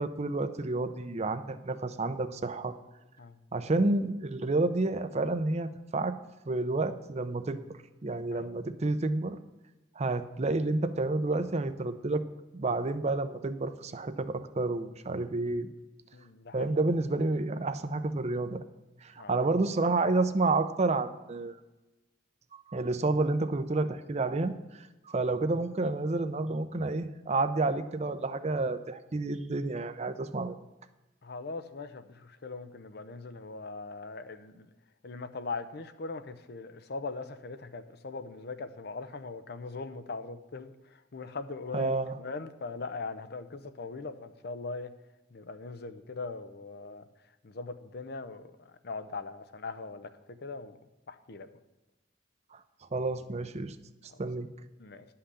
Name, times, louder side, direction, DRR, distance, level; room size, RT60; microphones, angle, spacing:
voice 1, 0.0-2.7 3.5-6.1 6.5-7.6 8.0-9.4 10.0-12.2 12.5-15.7 16.5-18.6 19.0-21.6 22.7-30.5 41.7-42.2 52.5-52.6 52.9-53.8 54.2-54.5, right 2 dB, 35° right, 10 dB, 0.6 m, -30 dB
voice 2, 16.1-16.8 19.2-19.4 31.2-34.7 35.0-40.7 41.1-41.9 42.2-44.9 45.3-47.0 47.4-50.1 50.4-50.8 51.1-51.5 54.8-55.0, left 3 dB, 60° left, 10 dB, 0.7 m, -40 dB
11.5 x 5.7 x 6.8 m, 1.0 s
head